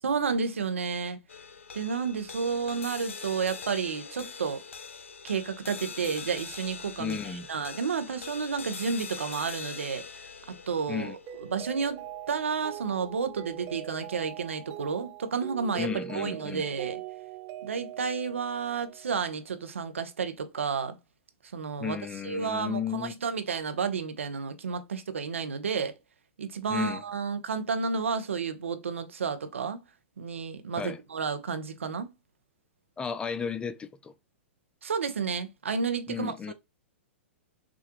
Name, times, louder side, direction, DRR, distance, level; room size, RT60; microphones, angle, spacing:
voice 1, 0.0-1.2 1.7-4.6 5.2-7.2 7.5-10.0 10.7-17.0 17.6-21.0 21.5-22.0 22.2-25.9 26.4-29.8 30.2-32.1 34.8-36.5, right 5 dB, 85° right, 0.9 m, -31 dB
sound 1, 1.3-13.8, left 5 dB, 85° left, 0.5 m, -43 dB
voice 2, 7.0-7.5 10.9-11.2 15.8-16.7 21.8-23.1 26.7-27.0 30.8-31.0 33.0-34.1 36.1-36.5, left 7 dB, 15° left, 0.3 m, -33 dB
Mallet percussion, 11.3-19.4, right 14 dB, 35° right, 0.6 m, -42 dB
6.2 x 2.4 x 3.0 m
hypercardioid pair, 120°, 7 cm